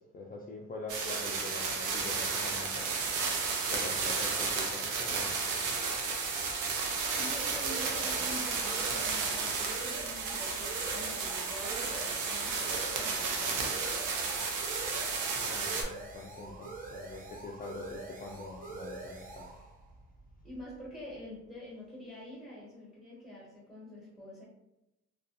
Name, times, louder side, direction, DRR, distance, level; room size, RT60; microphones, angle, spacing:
voice 1, 0.0-2.9 3.7-5.6 15.4-19.5, left 2 dB, 30° left, -1 dB, 0.4 m, -44 dB
sound 1, 0.9-15.8, right 4 dB, 85° right, 0.6 m, -33 dB
sound 2, 5.7-21.1, right 3 dB, 30° right, 0.6 m, -46 dB
voice 2, 7.1-13.9 20.4-24.4, left 1 dB, ahead, -9 dB, 1.3 m, -46 dB
2.4 x 2.3 x 2.5 m, 0.92 s
cardioid pair, 90°, 30 cm